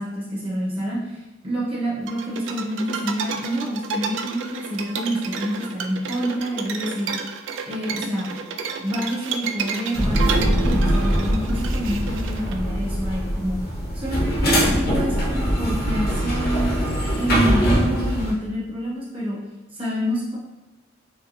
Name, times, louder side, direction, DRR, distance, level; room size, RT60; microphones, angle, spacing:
voice 1, 0.0-7.1 7.7-8.3 8.8-13.6 13.9-16.8 17.2-19.4 19.7-20.4, equal, 30° right, -7 dB, 1.1 m, -27 dB
sound 1, 2.1-12.5, right 5 dB, 75° right, 0.3 m, -31 dB
sound 2, 9.9-18.3, equal, 55° left, 0.8 m, -22 dB
4.3 x 2.2 x 3.0 m, 1.1 s
head